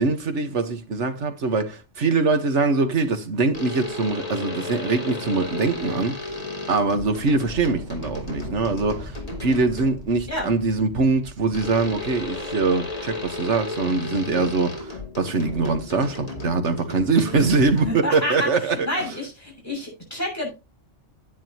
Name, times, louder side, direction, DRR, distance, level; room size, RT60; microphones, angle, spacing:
voice 1, 0.0-6.3 6.7-18.8, right 3 dB, 75° right, 1.7 m, -23 dB
sound 1, 3.5-10.1 11.5-18.2, left 2 dB, 30° left, 2.5 m, -34 dB
sound 2, 7.0-14.6, equal, 35° right, 4.6 m, -42 dB
voice 2, 17.3-20.5, left 1 dB, 15° left, 6.9 m, -29 dB
10.0 x 9.8 x 3.0 m
omnidirectional pair, 1.2 m